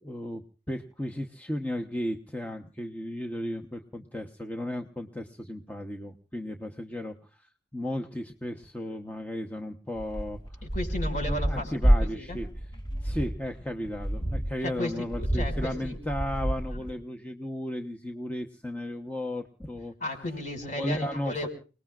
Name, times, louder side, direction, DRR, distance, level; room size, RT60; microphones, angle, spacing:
voice 1, 0.0-10.6 11.2-12.7 13.0-19.9 20.8-21.5, left 1 dB, 10° left, 3 dB, 1.0 m, -35 dB
sound 1, 10.0-16.9, equal, 25° left, 2.2 m, -28 dB
voice 2, 10.7-12.4 14.6-16.0 20.0-21.5, left 1 dB, 45° left, 6 dB, 5.6 m, -34 dB
30.0 x 19.5 x 2.4 m, 0.37 s
head